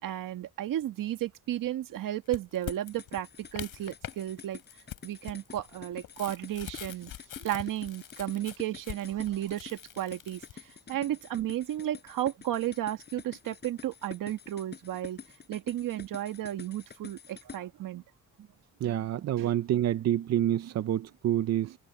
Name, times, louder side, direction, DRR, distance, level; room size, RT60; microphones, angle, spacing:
voice 1, 0.0-4.6 5.0-7.1 7.4-10.4 10.9-15.2 15.5-18.0 19.4-19.5, right 13 dB, 80° right, 1.9 m, -33 dB
sound 1, 2.3-4.2 4.5-10.5, left 12 dB, 85° left, 7.4 m, -43 dB
sound 2, 2.7-17.6, left 6 dB, 30° left, 5.7 m, -48 dB
voice 2, 18.8-21.8, right 12 dB, 55° right, 0.6 m, -28 dB
cardioid pair, 155°, 32 cm